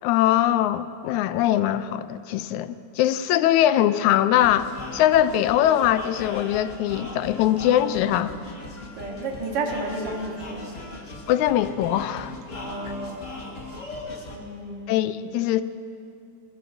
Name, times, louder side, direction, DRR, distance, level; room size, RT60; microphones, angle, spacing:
voice 1, 0.0-8.3 11.3-12.4 14.9-15.6, left 12 dB, 80° left, 13 dB, 1.9 m, -22 dB
sound 1, 4.3-14.4, left 2 dB, 35° left, 1.2 m, -39 dB
voice 2, 9.0-10.8 12.5-13.3 14.3-14.9, right 2 dB, 55° right, 0 dB, 2.3 m, -32 dB
21.5 x 20.5 x 2.6 m, 2.4 s
omnidirectional pair, 3.4 m